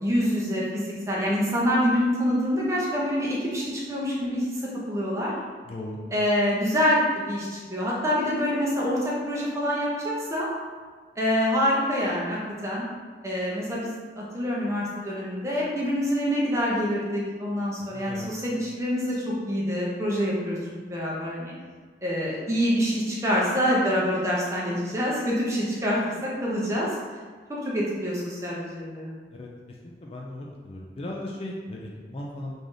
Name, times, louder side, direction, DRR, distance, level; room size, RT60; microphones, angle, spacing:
voice 1, 0.0-4.4 4.9-5.3 6.1-10.5 11.2-12.8 13.2-20.6 20.8-21.5 22.0-26.0 26.4-26.9 27.5-29.1, equal, 15° right, -5 dB, 0.7 m, -26 dB
voice 2, 5.6-6.0 17.9-18.3 29.3-32.5, left 1 dB, 30° left, -2 dB, 0.3 m, -37 dB
3.2 x 2.6 x 3.8 m, 1.5 s
head